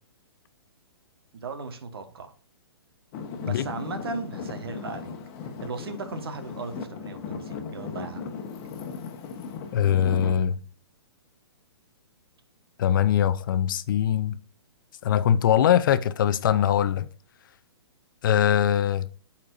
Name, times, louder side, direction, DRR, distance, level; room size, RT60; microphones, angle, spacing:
voice 1, 1.3-2.3 3.4-5.2 5.6-8.3, right 4 dB, 65° right, 1.4 m, -37 dB
Traffic noise roadway noise / Engine, 3.1-10.4, left 6 dB, 35° left, 1.3 m, -37 dB
voice 2, 9.7-10.6 12.8-14.3 15.0-17.1 18.2-19.1, left 9 dB, 50° left, 0.6 m, -22 dB
12.0 x 4.4 x 2.6 m
figure-of-eight pair, 125°, 14 cm